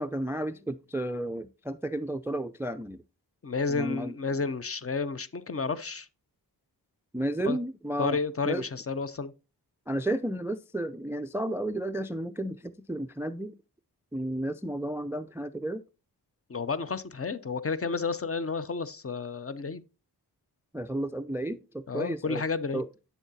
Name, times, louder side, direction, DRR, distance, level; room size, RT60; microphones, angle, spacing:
voice 1, 0.0-3.0 3.7-4.1 7.1-8.2 8.4-8.6 9.9-13.5 14.1-15.8 20.7-22.4 22.7-22.9, right 1 dB, 5° right, 0.3 m, -32 dB
voice 2, 3.4-6.1 7.4-7.6 8.0-9.3 16.5-19.8 21.9-22.8, left 4 dB, 35° left, 0.6 m, -31 dB
8.2 x 7.0 x 2.7 m
cardioid pair, 45°, 42 cm